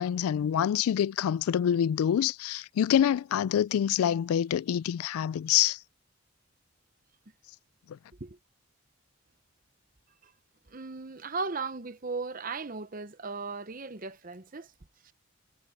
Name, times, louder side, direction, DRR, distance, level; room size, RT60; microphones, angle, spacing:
voice 1, 0.0-5.8, left 9 dB, 85° left, 0.3 m, -26 dB
voice 2, 10.7-14.7 15.0-15.1, right 4 dB, 40° right, 0.8 m, -37 dB
head